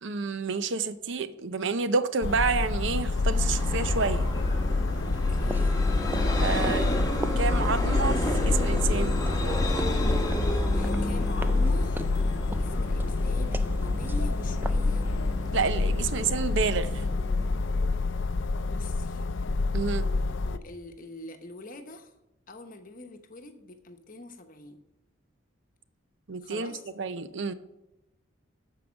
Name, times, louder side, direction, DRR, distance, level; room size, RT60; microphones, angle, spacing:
voice 1, 0.0-4.3 6.4-6.9 7.4-9.2 15.5-17.1 19.7-20.1 26.3-27.5, right 4 dB, 60° right, 12 dB, 0.6 m, -29 dB
sound 1, 2.2-20.6, left 3 dB, 60° left, 0.5 m, -27 dB
Vehicle, 2.9-18.4, equal, 20° left, 1.1 m, -32 dB
sound 2, 4.8-15.7, right 1 dB, 10° right, 0.3 m, -41 dB
voice 2, 5.0-6.0 10.7-12.2 12.5-15.1 16.2-16.3 18.6-19.3 20.4-22.1 22.5-24.8 26.4-26.9, left 1 dB, 40° left, 6 dB, 1.0 m, -44 dB
13.0 x 4.8 x 6.3 m, 0.95 s
head